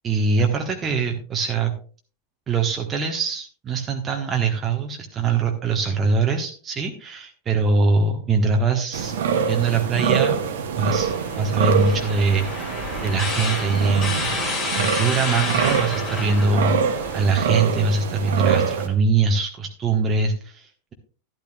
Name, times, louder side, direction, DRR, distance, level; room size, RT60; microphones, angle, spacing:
voice 1, 0.0-1.7 2.5-9.1 9.5-10.5 10.8-11.1 11.4-14.3 14.7-20.9, right 4 dB, 25° right, 3 dB, 1.3 m, -22 dB
sound 1, 8.9-18.9, right 7 dB, 55° right, 1.4 m, -25 dB
sound 2, 10.9-17.4, left 3 dB, 35° left, 5.4 m, -30 dB
12.0 x 12.0 x 2.3 m, 0.39 s
figure-of-eight pair, 90°, 0 cm